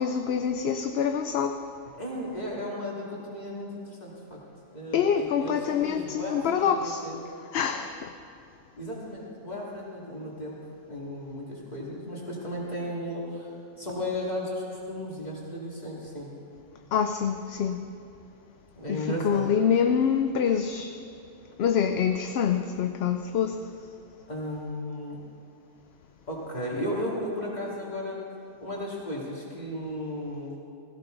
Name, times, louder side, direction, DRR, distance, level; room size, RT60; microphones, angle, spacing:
voice 1, 0.0-1.6 4.9-7.0 7.5-8.1 16.9-17.9 18.9-20.9 21.6-23.6, left 7 dB, 60° left, 7 dB, 0.8 m, -26 dB
voice 2, 1.9-4.4 4.7-7.2 8.8-10.6 10.9-13.5 13.8-16.3 18.8-19.4 24.3-25.2 26.3-28.3 28.6-30.6, left 1 dB, 35° left, -4 dB, 2.8 m, -35 dB
17.0 x 16.0 x 4.0 m, 2.6 s
omnidirectional pair, 1.3 m